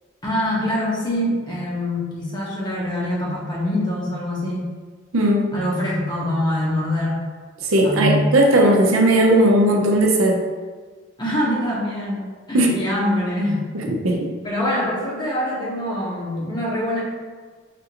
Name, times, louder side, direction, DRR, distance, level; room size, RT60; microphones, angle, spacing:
voice 1, 0.2-4.7 5.5-7.2 7.8-8.4 11.2-12.2 12.5-13.6 14.4-17.0, left 1 dB, 20° left, -5 dB, 0.8 m, -24 dB
voice 2, 5.1-5.5 7.6-10.4 12.5-12.8 13.7-14.3, right 1 dB, 80° right, 1 dB, 0.6 m, -17 dB
5.1 x 2.5 x 2.8 m, 1.5 s
head